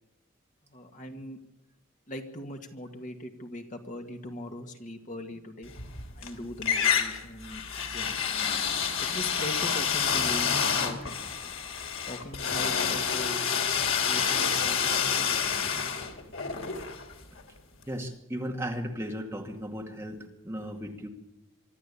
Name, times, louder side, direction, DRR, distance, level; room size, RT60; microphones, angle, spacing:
voice 1, 0.7-1.4 2.1-5.7 6.1-8.2 9.0-11.5 12.1-15.6, left 1 dB, 40° left, 4 dB, 2.1 m, -41 dB
sound 1, 5.7-6.3 6.6-17.5, left 7 dB, 80° left, 3.0 m, -28 dB
voice 2, 17.9-21.1, equal, 10° right, 1 dB, 2.2 m, -36 dB
24.5 x 13.0 x 8.5 m, 0.92 s
head